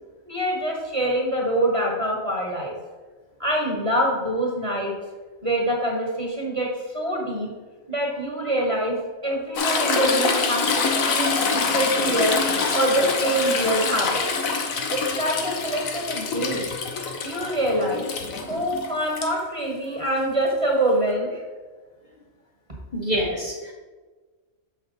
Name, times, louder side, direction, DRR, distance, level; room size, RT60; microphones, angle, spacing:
voice 1, 0.2-2.7 3.4-4.9 5.4-6.7 6.9-7.5 7.9-12.4 12.7-14.2 14.9-16.7 17.2-18.0 18.5-21.4, right 1 dB, 25° right, -2 dB, 1.3 m, -25 dB
Toilet flush / Trickle dribble, 9.6-19.3 21.1-21.2, left 4 dB, 85° left, 1.3 m, -25 dB
voice 2, 22.9-23.7, equal, 35° left, -3 dB, 1.2 m, -26 dB
7.1 x 5.6 x 3.9 m, 1.3 s
omnidirectional pair, 1.4 m